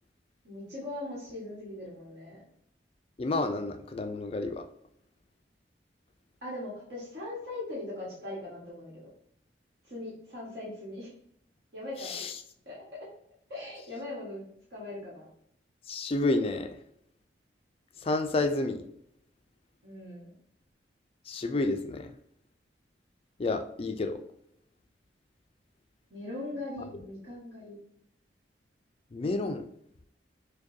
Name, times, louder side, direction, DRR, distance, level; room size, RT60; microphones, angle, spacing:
voice 1, 0.4-2.4 6.4-8.9 9.8-11.1 11.7-12.2 12.6-12.8 13.5-14.4 14.7-15.3 19.8-20.3 26.1-27.8, left 2 dB, 60° right, -7 dB, 1.5 m, -40 dB
voice 2, 3.2-4.6 12.0-12.3 15.9-16.8 18.0-18.8 21.3-22.1 23.4-24.2 29.1-29.7, left 2 dB, 30° left, 7 dB, 0.3 m, -30 dB
4.8 x 2.2 x 2.6 m, 0.70 s
head